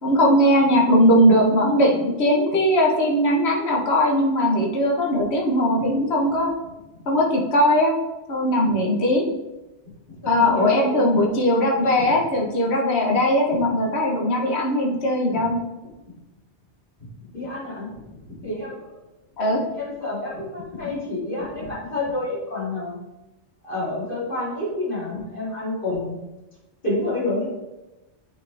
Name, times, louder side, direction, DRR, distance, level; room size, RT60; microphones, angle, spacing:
voice 1, 0.0-6.5 7.1-7.9 8.3-9.2 10.3-15.6 19.4-19.6, equal, 65° left, 0 dB, 1.5 m, -19 dB
voice 2, 10.2-11.1 12.0-12.1 15.3-15.4 17.3-18.0 18.4-18.9 19.7-23.0 23.6-26.2 26.8-27.5, left 2 dB, 50° left, -7 dB, 3.1 m, -28 dB
8.3 x 5.4 x 3.4 m, 1.0 s
omnidirectional pair, 1.2 m